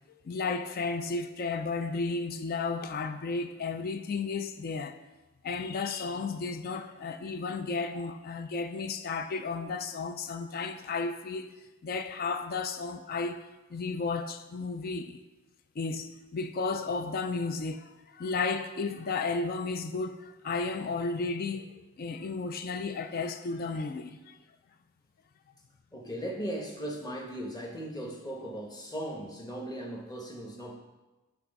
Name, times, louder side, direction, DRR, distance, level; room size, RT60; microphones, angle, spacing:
voice 1, 0.1-5.0 5.4-11.5 11.8-15.2 15.8-24.4, left 4 dB, 45° left, 0.4 m, -33 dB
voice 2, 25.9-30.8, right 1 dB, 20° left, 1.0 m, -38 dB
8.3 x 3.4 x 5.2 m
head